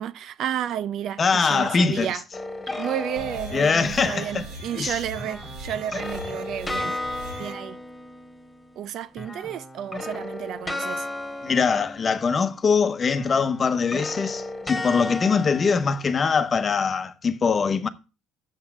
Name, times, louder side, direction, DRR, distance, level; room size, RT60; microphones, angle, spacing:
voice 1, 0.0-2.2 2.8-7.0 7.4-7.8 8.8-11.1, right 10 dB, 60° right, 0.6 m, -31 dB
voice 2, 1.2-2.1 3.5-4.4 4.7-5.0 11.4-17.9, left 5 dB, 35° left, 0.9 m, -22 dB
sound 1, 2.3-4.2 5.2-8.9 9.1-12.7 13.1-16.6, left 2 dB, 15° left, 1.8 m, -35 dB
sound 2, 3.2-7.5, right 1 dB, 80° right, 2.4 m, -39 dB
7.4 x 5.8 x 7.3 m
supercardioid pair, 95°, 0 cm